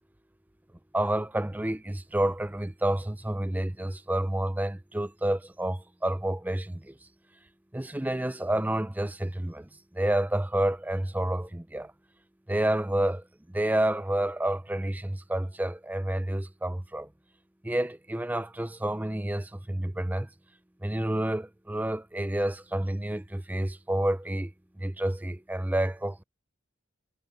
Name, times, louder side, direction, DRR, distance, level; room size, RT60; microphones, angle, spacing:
voice 1, 0.9-7.0 7.7-11.9 12.5-17.1 17.6-20.3 20.8-24.5 24.8-26.2, right 1 dB, 10° right, 0.5 m, -29 dB
head